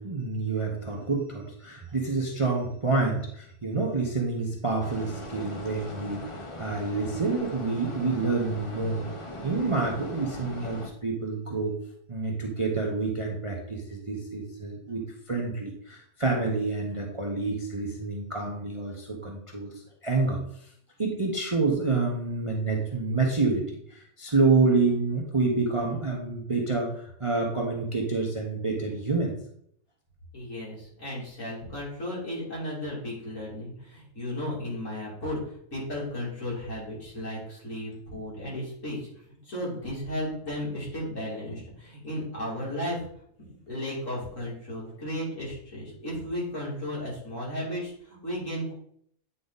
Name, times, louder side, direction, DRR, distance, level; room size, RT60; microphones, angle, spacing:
voice 1, 0.0-11.7 12.1-20.4 21.0-29.3, right 3 dB, 25° right, -1 dB, 0.8 m, -28 dB
sound 1, 4.8-10.9, left 1 dB, 25° left, 0.8 m, -40 dB
voice 2, 30.3-43.1 43.7-48.7, left 1 dB, 55° left, -6 dB, 3.4 m, -34 dB
9.0 x 3.9 x 4.0 m, 0.68 s
omnidirectional pair, 1.6 m